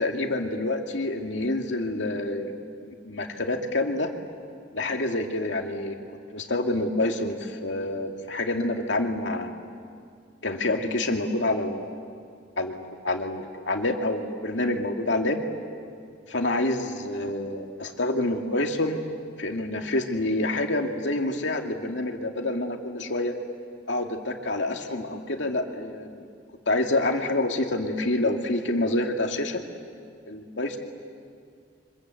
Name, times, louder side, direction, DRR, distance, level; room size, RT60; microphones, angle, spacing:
voice 1, 0.0-2.5 2.8-4.1 4.7-6.0 6.3-9.5 10.4-12.1 12.6-15.4 16.3-19.0 19.4-23.3 23.9-26.3 26.7-29.6 30.3-30.8, left 2 dB, 75° left, 3 dB, 2.3 m, -27 dB
28.0 x 25.0 x 7.9 m, 2.3 s
head